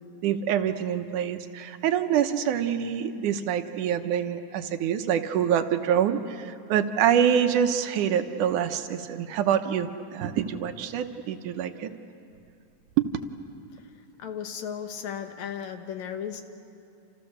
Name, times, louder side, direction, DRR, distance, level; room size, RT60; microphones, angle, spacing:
voice 1, 0.2-11.9 13.0-13.1, right 9 dB, 80° right, 7 dB, 2.5 m, -26 dB
voice 2, 14.2-16.4, left 8 dB, 70° left, 6 dB, 2.4 m, -35 dB
29.5 x 28.0 x 6.9 m, 2.6 s
omnidirectional pair, 3.6 m